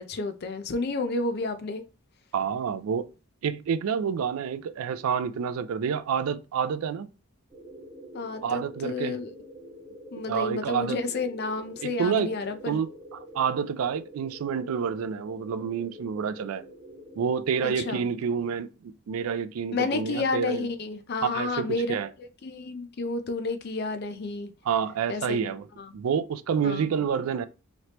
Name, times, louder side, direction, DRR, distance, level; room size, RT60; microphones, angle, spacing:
voice 1, 0.0-1.8 8.1-9.3 10.1-12.8 17.6-18.1 19.7-24.5 25.1-25.4 25.8-25.9 26.6-26.8, left 3 dB, 45° left, 0.4 m, -31 dB
voice 2, 2.3-3.1 3.4-7.1 8.4-9.2 10.3-11.0 11.8-12.3 12.7-16.6 17.2-20.7 21.2-22.1 24.7-25.7 25.9-27.5, right 7 dB, 75° right, 0.3 m, -28 dB
sound 1, 7.5-18.1, equal, 20° right, 1.4 m, -46 dB
3.2 x 2.9 x 2.9 m
head